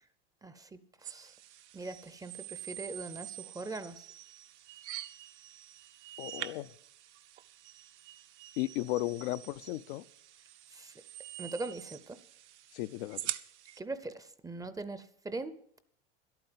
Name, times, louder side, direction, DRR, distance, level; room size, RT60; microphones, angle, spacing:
voice 1, 0.4-1.3 1.7-4.0 10.7-10.9 11.4-12.2 13.8-15.5, right 3 dB, 10° right, 14 dB, 0.6 m, -41 dB
sound 1, 1.0-13.8, right 12 dB, 85° right, 0.7 m, -46 dB
voice 2, 6.2-6.7 8.6-10.0 12.7-13.3, left 17 dB, 65° left, 13 dB, 0.5 m, -35 dB
11.5 x 8.9 x 7.4 m, 0.66 s
supercardioid pair, 115°, 34 cm